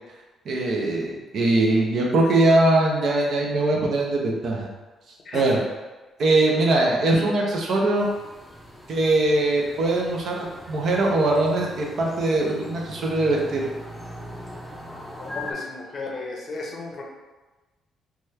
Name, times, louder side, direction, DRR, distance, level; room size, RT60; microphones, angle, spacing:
voice 1, 0.5-4.7 5.3-5.6 6.2-8.1 8.9-13.7, right 2 dB, 65° right, -1 dB, 0.6 m, -21 dB
voice 2, 5.2-5.6 15.2-17.0, left 3 dB, 50° left, -1 dB, 0.6 m, -34 dB
sound 1, 7.9-15.5, left 1 dB, ahead, 0.5 m, -40 dB
2.9 x 2.3 x 3.2 m, 1.2 s
cardioid pair, 90°, 0 cm